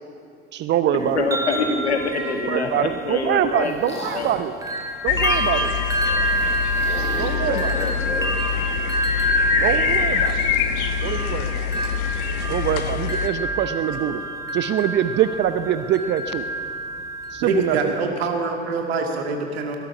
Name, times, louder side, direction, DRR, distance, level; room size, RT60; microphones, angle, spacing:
voice 1, 0.5-1.3 2.5-4.5 5.0-5.7 7.1-7.8 9.6-10.4 11.0-11.8 12.5-14.3 14.5-16.4 17.3-17.9, right 10 dB, 30° right, 11 dB, 0.6 m, -24 dB
sound 1, 1.0-4.3 4.6-18.0, right 1 dB, 10° right, 2.3 m, -27 dB
voice 2, 1.1-4.3 6.9-8.3, left 4 dB, 75° left, 5 dB, 1.7 m, -26 dB
sound 2, 1.8-2.4 3.1-4.5 5.9-9.0, left 1 dB, 20° left, 4.7 m, -41 dB
sound 3, 5.1-13.3, left 9 dB, 55° left, 1.1 m, -25 dB
voice 3, 17.4-19.8, right 3 dB, 65° right, 3 dB, 2.1 m, -25 dB
20.5 x 12.0 x 5.8 m, 2.4 s
figure-of-eight pair, 70°, 33 cm